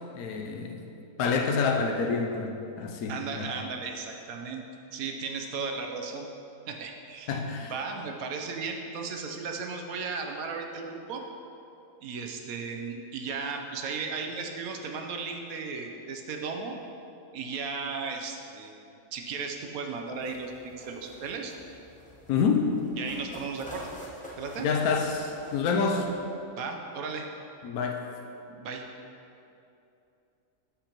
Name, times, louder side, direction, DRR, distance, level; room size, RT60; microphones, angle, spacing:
voice 1, 0.1-0.9 1.2-3.5 7.3-7.7 22.3-22.7 24.6-26.1 27.6-28.0, left 5 dB, 80° left, 2 dB, 1.1 m, -27 dB
voice 2, 3.1-4.6 4.9-6.3 6.7-7.4 7.7-11.2 12.0-16.8 17.3-18.8 19.1-21.5 23.0-23.9 24.4-24.7 26.6-27.3 28.5-28.8, right 5 dB, 75° right, 3 dB, 1.1 m, -35 dB
sound 1, 20.1-26.2, equal, 5° left, 0.8 m, -48 dB
12.5 x 5.1 x 3.0 m, 2.8 s
omnidirectional pair, 1.5 m